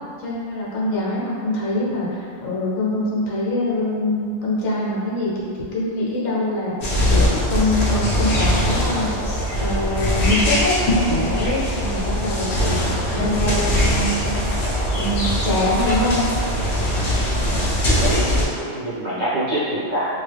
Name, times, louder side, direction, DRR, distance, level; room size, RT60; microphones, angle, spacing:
voice 1, 0.2-6.8 7.1-10.8 11.1-12.8 13.1-14.4 14.9-16.3, left 1 dB, 70° left, -5 dB, 1.1 m, -24 dB
sound 1, 6.8-18.4, equal, 50° left, 0.8 m, -21 dB
voice 2, 17.8-20.1, right 1 dB, 55° right, -11 dB, 0.5 m, -25 dB
3.1 x 2.3 x 3.3 m, 2.2 s
omnidirectional pair, 1.5 m